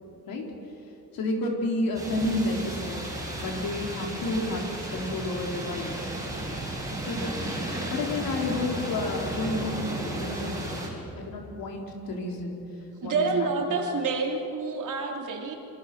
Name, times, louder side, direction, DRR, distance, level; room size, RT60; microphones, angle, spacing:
voice 1, 1.1-3.0 3.4-6.1 7.0-7.5 7.9-10.8 11.2-12.6 13.0-13.3 13.6-13.7, left 2 dB, 70° left, 0 dB, 4.4 m, -30 dB
sound 1, 1.9-10.9, right 1 dB, 10° right, 5.3 m, -34 dB
voice 2, 13.0-15.6, right 4 dB, 55° right, 1 dB, 3.6 m, -28 dB
27.0 x 26.0 x 6.4 m, 3.0 s
cardioid pair, 160°, 35 cm